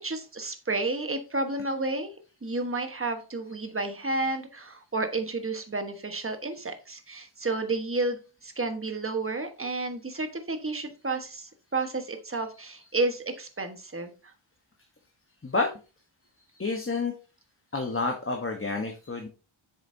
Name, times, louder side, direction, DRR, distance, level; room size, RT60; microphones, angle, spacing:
voice 1, 0.0-2.1 2.4-14.3, right 2 dB, 25° right, 7 dB, 1.3 m, -31 dB
voice 2, 16.6-17.1 17.7-19.3, left 3 dB, 25° left, 2 dB, 1.1 m, -29 dB
8.1 x 6.9 x 2.7 m, 0.33 s
wide cardioid pair, 105°, 49 cm